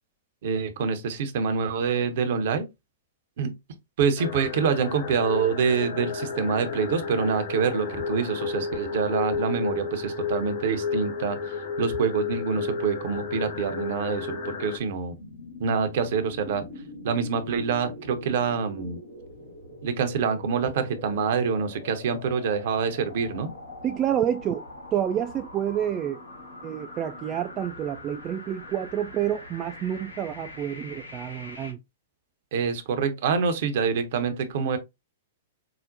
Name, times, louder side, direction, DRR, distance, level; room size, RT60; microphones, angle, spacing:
voice 1, 0.4-2.7 3.4-3.5 4.0-11.4 11.8-15.2 15.6-16.6 17.0-19.0 19.8-23.5 32.5-34.8, right 6 dB, 55° right, 0.7 m, -26 dB
sound 1, 4.2-14.8, left 5 dB, 55° left, 1.1 m, -32 dB
sound 2, 15.2-31.7, left 2 dB, 85° left, 1.8 m, -43 dB
voice 2, 23.8-24.6 24.9-26.2 26.6-31.8, right 10 dB, 30° right, 0.3 m, -28 dB
4.9 x 2.1 x 2.6 m
figure-of-eight pair, 105°, 0 cm